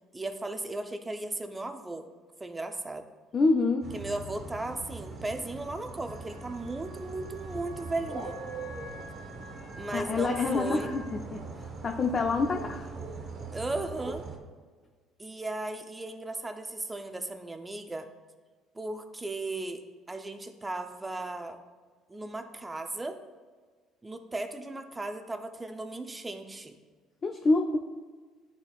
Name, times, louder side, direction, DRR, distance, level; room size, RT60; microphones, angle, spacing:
voice 1, 0.1-2.1 2.4-3.0 3.9-8.4 9.7-10.9 13.5-14.2 15.2-18.1 18.7-21.6 22.1-23.2 24.0-26.8, right 2 dB, 15° right, 7 dB, 0.6 m, -36 dB
voice 2, 3.3-3.8 9.9-11.4 11.8-12.9 27.2-27.8, left 3 dB, 35° left, 3 dB, 0.5 m, -26 dB
sound 1, 3.8-14.4, right 3 dB, 40° right, 1.0 m, -41 dB
Wind instrument woodwind instrument, 6.0-11.2, equal, 90° left, 1.7 m, -49 dB
10.5 x 4.4 x 2.4 m, 1.5 s
supercardioid pair, 95°, 0 cm